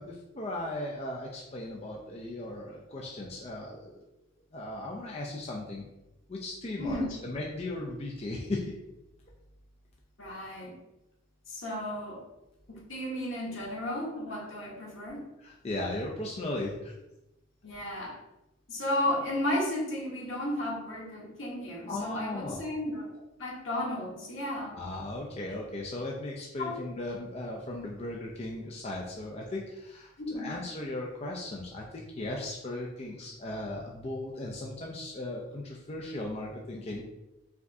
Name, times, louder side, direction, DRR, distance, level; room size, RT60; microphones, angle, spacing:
voice 1, 0.0-4.0 4.5-5.9 6.3-8.7 15.4-16.9 21.9-22.6 24.6-37.0, left 2 dB, 30° left, -1 dB, 0.4 m, -37 dB
voice 2, 6.8-7.2 10.2-10.7 11.5-12.2 12.7-15.2 17.6-18.2 18.7-23.1 23.4-24.7 26.6-26.8 30.2-30.5, left 1 dB, 75° left, -3 dB, 1.4 m, -33 dB
4.8 x 3.5 x 2.6 m, 0.94 s
head